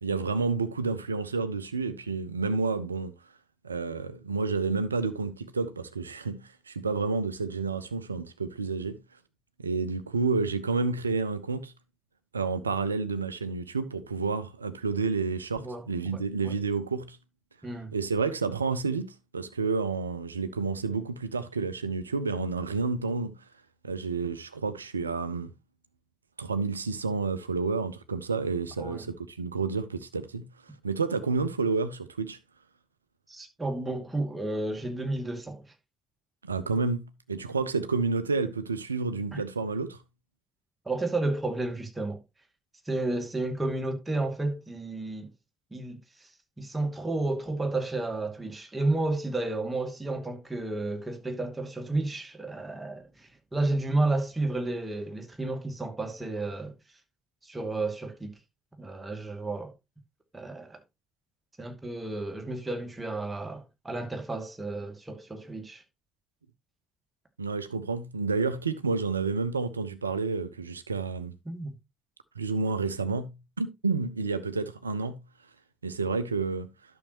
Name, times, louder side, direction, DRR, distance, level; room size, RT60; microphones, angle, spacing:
voice 1, 0.0-3.1 3.6-9.0 9.6-11.7 12.3-17.2 17.9-23.4 23.8-25.5 26.4-30.5 30.8-32.4 36.4-40.0 67.4-71.3 72.4-75.2 75.8-76.7, right 4 dB, 85° right, 0.5 m, -30 dB
voice 2, 15.6-16.5 17.6-17.9 28.8-29.1 33.3-35.6 39.3-39.4 40.9-42.2 42.9-45.3 45.7-46.3 46.6-56.7 57.4-58.3 58.8-59.7 60.3-60.8 61.6-65.8 71.5-71.7, right 2 dB, 20° right, 2.4 m, -32 dB
11.5 x 6.4 x 2.9 m
figure-of-eight pair, 40°, 0 cm